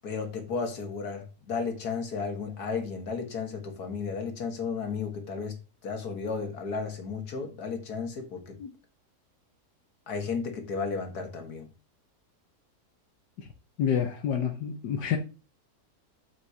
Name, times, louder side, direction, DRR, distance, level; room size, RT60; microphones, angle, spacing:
voice 1, 0.0-5.6 5.8-8.6 10.1-11.7, left 5 dB, 70° left, 2.1 m, -33 dB
voice 2, 13.8-15.2, left 8 dB, 90° left, 1.6 m, -28 dB
8.1 x 7.3 x 2.8 m
omnidirectional pair, 1.7 m